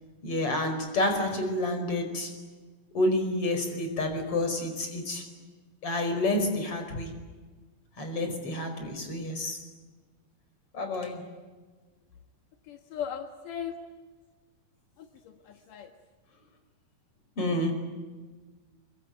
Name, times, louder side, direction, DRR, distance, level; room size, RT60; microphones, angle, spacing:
voice 1, 0.2-2.3 2.9-5.2 5.8-7.1 8.0-9.6 10.7-11.2 17.4-17.7, left 1 dB, 30° left, 6 dB, 5.6 m, -29 dB
voice 2, 12.7-13.7 15.5-15.9, left 8 dB, 65° left, 5 dB, 2.2 m, -37 dB
26.5 x 23.5 x 9.3 m, 1.4 s
omnidirectional pair, 5.7 m